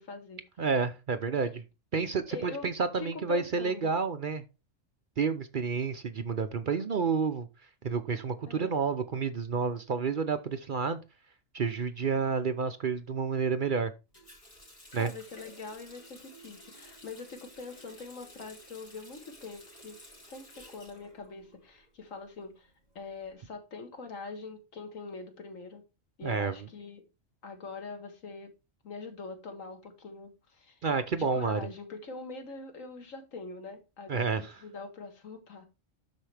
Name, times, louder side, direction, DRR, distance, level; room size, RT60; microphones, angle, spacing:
voice 1, 0.0-0.4 1.4-1.5 2.3-2.7 3.0-3.9 8.5-8.7 15.0-25.8 26.2-27.0 27.4-28.6 28.8-30.9 31.2-35.7, left 4 dB, 85° left, 1.9 m, -43 dB
voice 2, 0.6-1.6 1.9-4.4 5.2-7.5 7.8-11.0 11.5-13.9 14.9-15.1 26.2-26.5 30.8-31.6 34.1-34.4, right 5 dB, 50° right, 0.7 m, -30 dB
Water tap faucet, 14.1-21.9 22.2-23.2, equal, 30° left, 3.0 m, -53 dB
12.0 x 4.7 x 3.3 m
omnidirectional pair, 1.3 m